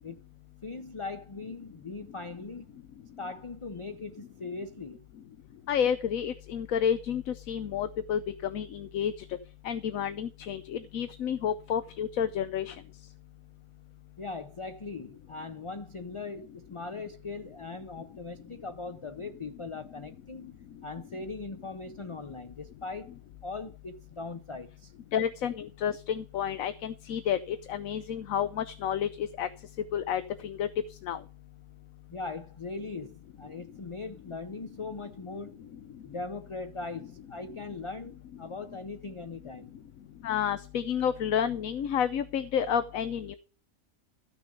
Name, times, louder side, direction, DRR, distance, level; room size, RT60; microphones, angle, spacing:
voice 1, 0.6-2.7 3.2-5.0 14.2-20.6 20.8-23.1 23.4-24.9 32.1-35.6 36.0-39.7, left 3 dB, 35° left, 0.6 m, -40 dB
voice 2, 5.7-9.4 9.6-12.8 25.1-29.5 29.9-30.7 31.0-31.2 40.2-43.3, left 8 dB, 85° left, 1.1 m, -30 dB
14.0 x 6.5 x 5.2 m
omnidirectional pair, 1.4 m